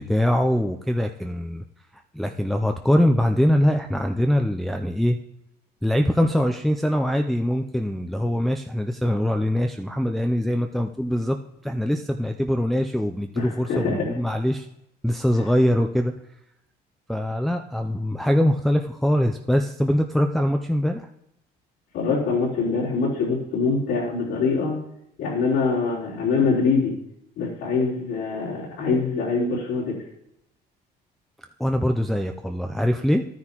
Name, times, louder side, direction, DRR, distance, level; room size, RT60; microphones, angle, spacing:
voice 1, 0.0-1.6 2.1-5.2 5.8-11.4 11.6-14.7 15.0-16.1 17.1-21.1 31.6-33.3, equal, ahead, 4 dB, 0.4 m, -23 dB
voice 2, 13.4-14.1 21.9-24.8 25.2-26.9 27.4-30.0, left 4 dB, 90° left, -7 dB, 3.7 m, -24 dB
12.5 x 9.7 x 2.9 m, 0.81 s
cardioid pair, 110°, 17 cm